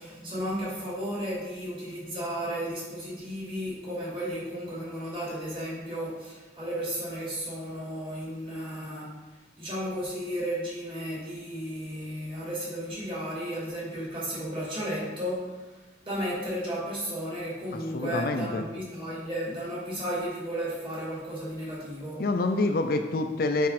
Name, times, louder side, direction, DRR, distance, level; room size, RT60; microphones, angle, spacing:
voice 1, 0.0-9.2 9.6-22.2, equal, 30° right, -6 dB, 2.4 m, -34 dB
voice 2, 17.7-18.6 22.2-23.7, left 2 dB, 55° left, 6 dB, 0.5 m, -27 dB
6.3 x 5.1 x 4.2 m, 1.2 s
head